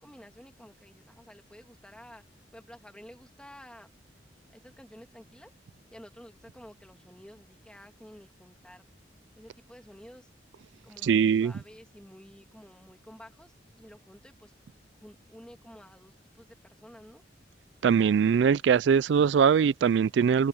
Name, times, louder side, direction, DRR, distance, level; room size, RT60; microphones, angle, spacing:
voice 1, 0.0-3.9 4.5-5.5 5.9-8.9 9.4-10.3 10.8-14.5 14.9-17.2, equal, 5° left, 2.4 m, -51 dB
voice 2, 11.0-11.5 17.8-20.5, right 7 dB, 75° right, 0.3 m, -22 dB
head